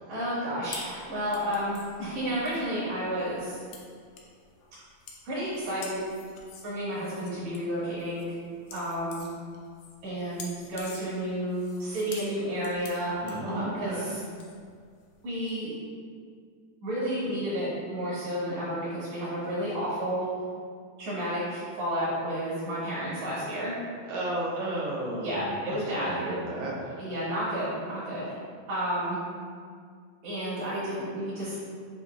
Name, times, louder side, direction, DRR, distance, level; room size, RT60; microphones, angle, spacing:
voice 1, 0.1-3.6 5.2-6.0 6.6-8.3 8.7-9.3 10.0-14.2 15.2-15.7 16.8-20.3 21.0-23.7 25.2-26.3 27.0-28.3 28.7-29.2 30.2-31.6, equal, 65° right, -10 dB, 2.9 m, -31 dB
sound 1, 0.7-15.5, left 5 dB, 85° left, 1.5 m, -48 dB
voice 2, 13.2-14.1 24.0-27.1, right 1 dB, 90° right, -5 dB, 1.2 m, -33 dB
7.5 x 2.9 x 2.4 m, 2.1 s
omnidirectional pair, 3.6 m